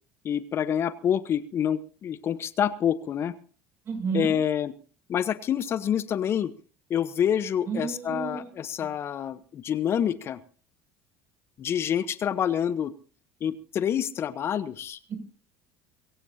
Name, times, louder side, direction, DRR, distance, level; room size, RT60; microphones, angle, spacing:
voice 1, 0.2-3.3 4.1-4.7 5.1-6.5 6.9-10.4 11.6-12.9 13.4-15.0, left 9 dB, 45° left, 14 dB, 1.0 m, -27 dB
voice 2, 3.9-4.3 7.7-8.5 15.1-15.2, right 6 dB, 45° right, 5 dB, 6.9 m, -31 dB
22.5 x 16.5 x 2.8 m, 0.40 s
hypercardioid pair, 80°, 6 cm